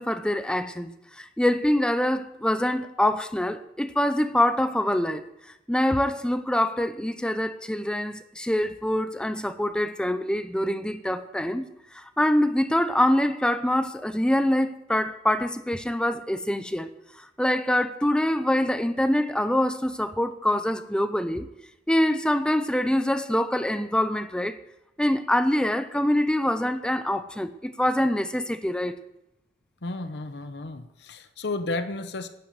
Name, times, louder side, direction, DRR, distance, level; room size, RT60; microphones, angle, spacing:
voice 1, 0.0-5.2 5.7-11.7 11.9-16.9 17.2-21.5 21.9-24.6 25.0-29.0, left 1 dB, 5° left, 0.6 m, -25 dB
voice 2, 29.8-32.3, left 2 dB, 65° left, 0.9 m, -32 dB
11.0 x 10.5 x 6.6 m
head